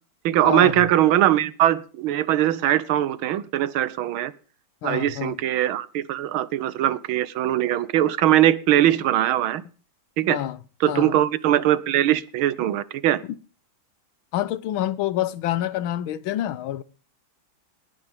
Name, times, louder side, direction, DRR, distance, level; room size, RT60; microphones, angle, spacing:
voice 1, 0.2-4.3 4.8-9.6 10.2-10.4 10.8-13.2, right 12 dB, 90° right, 1.7 m, -21 dB
voice 2, 4.8-5.4 10.3-10.6 10.9-11.2 14.3-16.8, left 12 dB, 85° left, 1.6 m, -27 dB
19.0 x 10.5 x 3.6 m
omnidirectional pair, 2.2 m